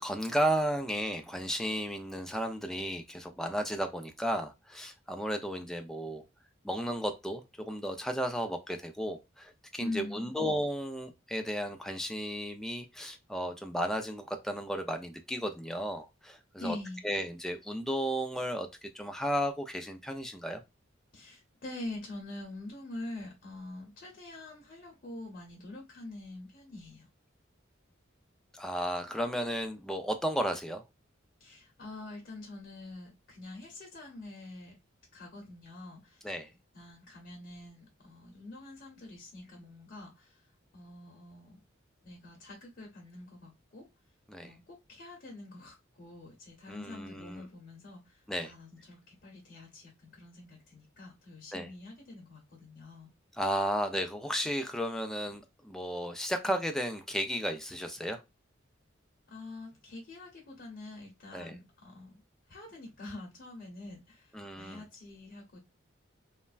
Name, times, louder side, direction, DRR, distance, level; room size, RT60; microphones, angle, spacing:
voice 1, 0.0-6.2 6.6-16.8 17.0-20.6 28.5-30.8 36.2-36.5 44.3-44.5 46.7-47.5 48.3-48.5 51.5-51.7 53.3-58.2 61.3-61.6 64.3-64.8, equal, ahead, 5 dB, 0.4 m, -34 dB
voice 2, 9.8-10.3 16.6-17.0 21.1-27.1 31.4-34.7 35.1-36.3 36.7-40.4 40.7-41.6 42.0-43.8 44.4-53.1 59.3-62.2 62.5-65.6, left 2 dB, 50° left, -2 dB, 0.9 m, -45 dB
3.2 x 2.1 x 2.3 m, 0.23 s
head